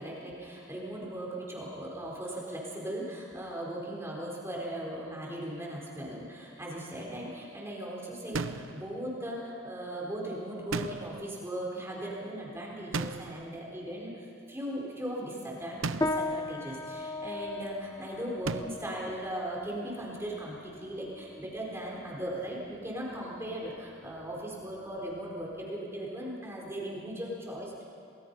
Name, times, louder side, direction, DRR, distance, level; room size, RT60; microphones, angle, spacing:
voice 1, 0.0-27.8, right 1 dB, 15° right, -3 dB, 4.2 m, -38 dB
sound 1, 8.3-8.8 10.7-11.3 12.9-13.5 15.8-16.3 18.4-18.9, right 4 dB, 80° right, 0.8 m, -35 dB
sound 2, 16.0-25.7, left 2 dB, 20° left, 0.7 m, -39 dB
29.0 x 20.0 x 5.5 m, 2.5 s
head